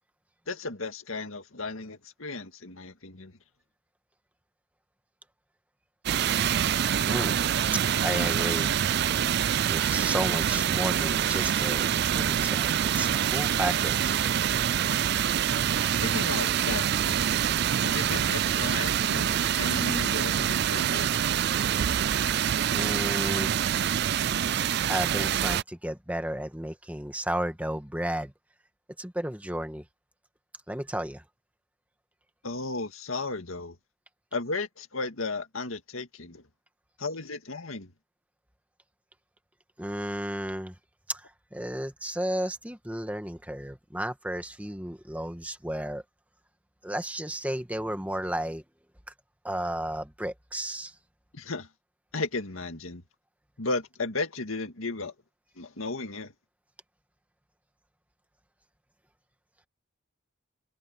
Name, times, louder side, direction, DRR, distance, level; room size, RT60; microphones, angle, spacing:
voice 1, 0.5-3.4 16.0-17.4 17.8-21.1 32.4-33.8 34.3-36.4 37.0-37.9 51.3-51.7 52.1-53.0 53.6-55.1 55.6-56.3, left 3 dB, 80° left, 2.0 m, -34 dB
sound 1, 6.1-25.6, right 9 dB, 50° right, 0.4 m, -26 dB
voice 2, 7.1-7.4 7.7-8.8 9.7-14.2 22.7-23.5 24.9-28.3 29.0-29.8 30.7-31.2 39.8-40.7 41.1-46.0 46.8-48.6 49.4-50.9, right 1 dB, 5° right, 1.7 m, -33 dB
head